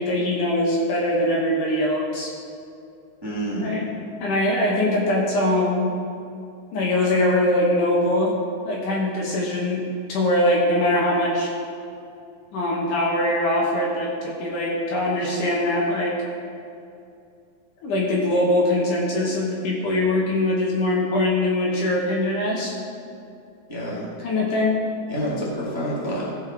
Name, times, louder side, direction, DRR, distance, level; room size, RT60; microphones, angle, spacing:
voice 1, 0.0-2.3 3.6-3.8 4.2-5.9 6.7-8.3 8.6-9.8 10.1-11.5 12.5-16.2 17.8-22.7 24.2-24.8, left 1 dB, 65° left, -3 dB, 2.4 m, -22 dB
voice 2, 3.2-3.7 23.7-24.1 25.1-26.2, equal, 15° right, -8 dB, 0.9 m, -28 dB
15.5 x 5.7 x 4.5 m, 2.5 s
omnidirectional pair, 4.5 m